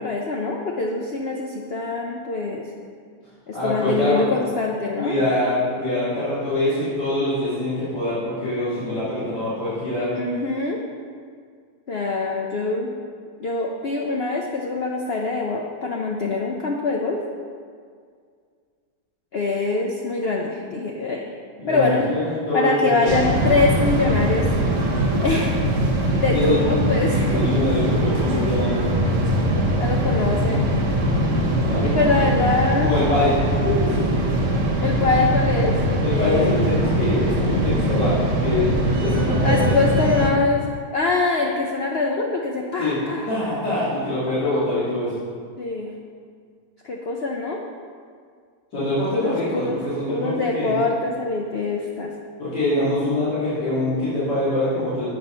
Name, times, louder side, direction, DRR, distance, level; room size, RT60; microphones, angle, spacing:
voice 1, 0.0-2.7 3.5-5.1 10.1-10.8 11.9-12.9 13.4-17.2 19.3-21.2 21.7-22.1 22.5-24.5 25.2-25.6 26.2-27.5 29.8-30.6 31.8-32.9 34.8-36.6 39.4-40.7 40.9-43.3 45.6-45.9 46.8-47.6 49.1-49.8 50.1-52.1, left 3 dB, 60° left, 0 dB, 0.6 m, -24 dB
voice 2, 3.5-4.3 4.9-10.1 21.6-23.2 26.3-26.6 27.2-28.9 31.6-32.3 32.8-33.4 33.6-34.0 36.0-39.7 42.8-43.0 43.3-45.1 48.7-50.7 52.4-55.1, left 1 dB, 80° left, -12 dB, 2.7 m, -24 dB
sound 1, 23.1-40.3, right 1 dB, 50° right, 1.3 m, -21 dB
7.9 x 5.2 x 5.5 m, 2.1 s
omnidirectional pair, 1.8 m